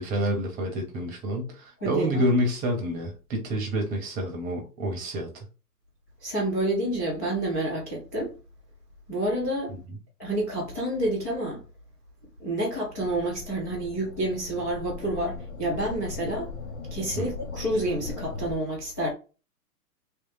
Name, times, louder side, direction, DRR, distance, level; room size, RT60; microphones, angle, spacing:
voice 1, 0.0-5.3 9.7-9.8 17.2-17.3, equal, 20° right, 0.9 m, -28 dB
voice 2, 1.8-2.2 6.2-8.3 9.1-9.7 10.2-11.6 12.4-16.5 16.9-19.1, right 1 dB, 10° left, 0.4 m, -29 dB
sound 1, 12.9-18.5, left 4 dB, 60° left, 1.0 m, -39 dB
3.2 x 3.2 x 3.1 m
hypercardioid pair, 125°, 48 cm